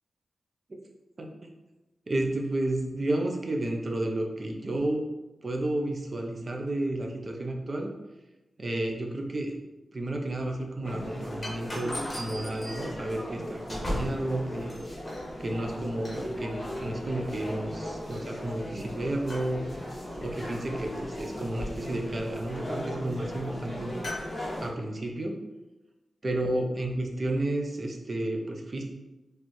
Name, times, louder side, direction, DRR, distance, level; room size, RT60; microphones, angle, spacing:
voice 1, 2.1-5.0 5.4-7.9 8.6-9.6 9.9-14.8 15.4-19.6 20.2-24.0 24.6-25.4 26.2-28.8, right 1 dB, 35° right, 1 dB, 0.6 m, -31 dB
sound 1, 10.8-24.7, left 1 dB, 25° left, 1.4 m, -36 dB
4.4 x 3.2 x 3.0 m, 1.1 s
wide cardioid pair, 140°, 0 cm